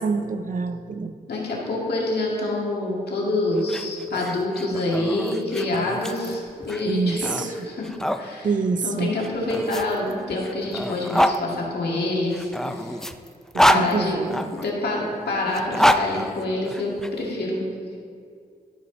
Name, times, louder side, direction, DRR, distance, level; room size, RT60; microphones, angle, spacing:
voice 1, 0.0-1.2 6.9-7.7 8.4-9.1 13.5-14.5, right 4 dB, 50° right, 10 dB, 0.6 m, -26 dB
voice 2, 1.3-7.9 8.2-8.5 8.8-13.0 13.7-14.2 14.5-17.7, left 2 dB, 75° left, -3 dB, 2.1 m, -26 dB
sound 1, 3.6-8.2 9.2-11.4 12.3-14.7 15.5-17.1, equal, 5° left, 0.5 m, -25 dB
12.0 x 5.2 x 4.0 m, 2.3 s
cardioid pair, 50°, 17 cm